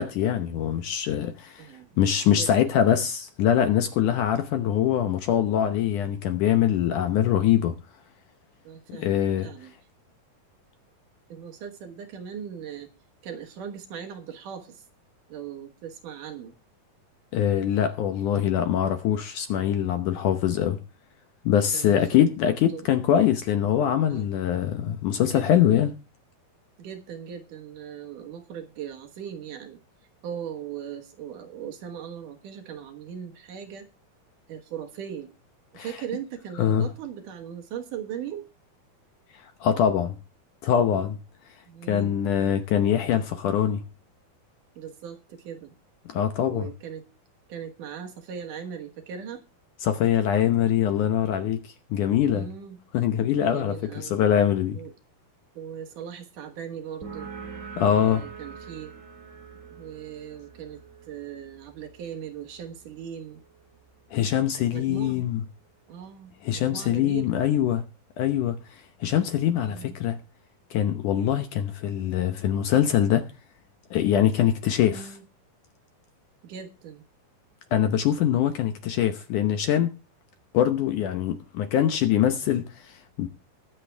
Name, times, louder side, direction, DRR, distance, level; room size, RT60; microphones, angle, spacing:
voice 1, 0.0-1.7 2.0-7.8 8.9-9.5 17.3-20.8 21.5-25.9 35.8-36.0 36.6-36.9 39.4-40.2 40.6-41.2 41.9-43.8 46.1-46.7 49.8-52.5 52.9-54.8 57.8-58.2 64.1-65.4 66.4-67.8 68.2-70.2 70.7-73.2 73.9-75.1 77.7-79.9 80.5-83.3, left 10 dB, 70° left, 2.1 m, -23 dB
voice 2, 1.6-1.9 2.4-2.5 8.6-9.7 11.3-12.9 13.2-14.8 15.3-16.5 21.7-22.8 24.1-24.3 25.2-25.5 26.8-29.8 30.2-33.9 34.5-35.3 35.7-38.4 41.7-42.1 44.8-45.7 46.5-47.1 47.5-49.4 52.3-52.8 53.4-54.1 54.7-54.9 55.5-57.3 57.9-58.9 59.8-63.4 64.7-65.3 65.9-67.3 69.6-70.0 74.9-75.2 76.4-77.0, right 8 dB, 65° right, 2.6 m, -39 dB
sound 1, 57.0-64.3, right 5 dB, 25° right, 2.2 m, -45 dB
21.5 x 7.6 x 3.4 m
omnidirectional pair, 4.4 m